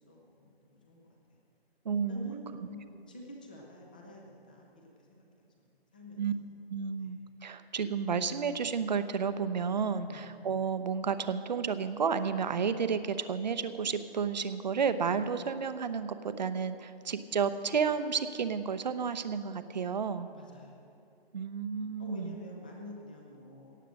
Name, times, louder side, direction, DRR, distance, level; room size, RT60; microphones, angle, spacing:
voice 1, 0.1-1.4 2.1-5.2 5.7-6.2 6.9-7.2 10.1-10.3 20.3-20.9 22.0-23.8, left 1 dB, 10° left, 0 dB, 0.5 m, -48 dB
voice 2, 1.8-2.3 6.2-6.3 6.7-20.3 21.3-22.4, right 6 dB, 45° right, 11 dB, 0.7 m, -31 dB
17.5 x 7.6 x 6.3 m, 2.6 s
hypercardioid pair, 160°, 31 cm